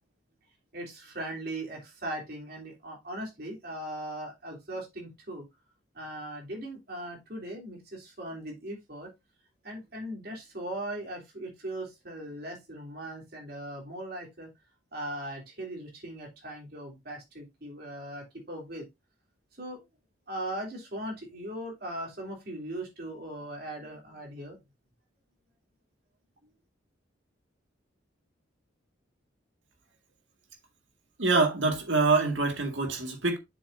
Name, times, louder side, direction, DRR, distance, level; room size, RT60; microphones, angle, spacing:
voice 1, 0.7-5.5 5.9-9.1 9.6-14.5 14.9-18.9 19.6-19.8 20.3-24.6 26.4-26.5, right 1 dB, 50° right, 3.1 m, -39 dB
voice 2, 31.2-33.4, right 3 dB, 75° right, 1.9 m, -25 dB
7.2 x 6.9 x 2.7 m
head